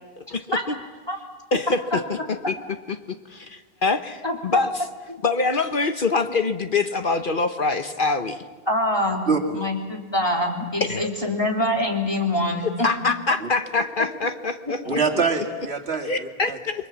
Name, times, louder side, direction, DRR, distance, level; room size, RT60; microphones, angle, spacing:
voice 1, 0.2-0.8 1.5-2.6 2.9-4.7 5.2-8.5 10.8-11.1 12.6-15.0 16.0-16.9, left 3 dB, 55° left, 8 dB, 1.1 m, -25 dB
voice 2, 8.7-9.3 9.5-12.7 14.8-15.0, left 1 dB, 25° left, 1 dB, 3.5 m, -24 dB
voice 3, 9.3-9.6 13.4-13.5 14.9-16.6, right 4 dB, 80° right, 3 dB, 2.5 m, -25 dB
29.5 x 23.0 x 7.3 m, 1.3 s
omnidirectional pair, 1.1 m